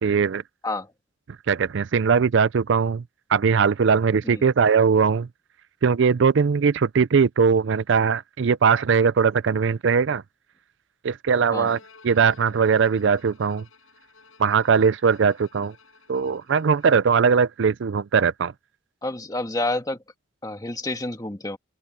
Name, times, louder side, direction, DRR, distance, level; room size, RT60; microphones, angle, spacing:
voice 1, 0.0-0.4 1.5-3.0 3.3-5.3 5.8-10.2 11.0-11.8 12.0-13.6 14.4-15.7 16.1-18.5, right 6 dB, 60° right, 0.4 m, -20 dB
Bowed string instrument, 11.6-17.3, left 5 dB, 80° left, 7.6 m, -54 dB
voice 2, 19.0-20.0 20.4-21.6, left 2 dB, 20° left, 1.7 m, -29 dB
open air
head